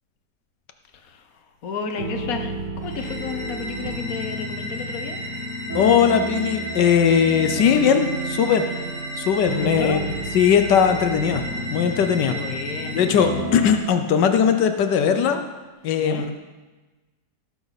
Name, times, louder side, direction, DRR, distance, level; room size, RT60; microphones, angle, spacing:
voice 1, 1.6-5.2 9.5-10.0 12.2-13.4 16.0-16.2, left 5 dB, 60° left, 6 dB, 1.5 m, -32 dB
sound 1, 2.0-13.8, right 2 dB, 80° right, 2.3 m, -32 dB
sound 2, 2.8-13.3, equal, 15° left, 3.3 m, -34 dB
voice 2, 5.7-8.6 9.2-10.1 10.3-11.4 11.7-12.3 12.9-15.4 15.8-16.3, left 7 dB, 85° left, 7 dB, 1.5 m, -19 dB
17.5 x 9.8 x 4.1 m, 1.2 s
omnidirectional pair, 1.8 m